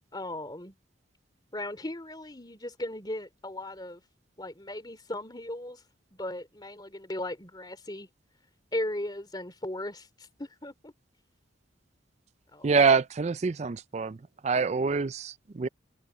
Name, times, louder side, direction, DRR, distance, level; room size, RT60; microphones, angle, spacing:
voice 1, 0.1-0.7 1.5-4.0 4.4-5.8 6.1-8.1 8.7-10.9 12.5-12.8, left 1 dB, 20° left, 3.4 m, -37 dB
voice 2, 12.6-14.2 14.4-15.7, right 5 dB, 35° right, 0.4 m, -25 dB
head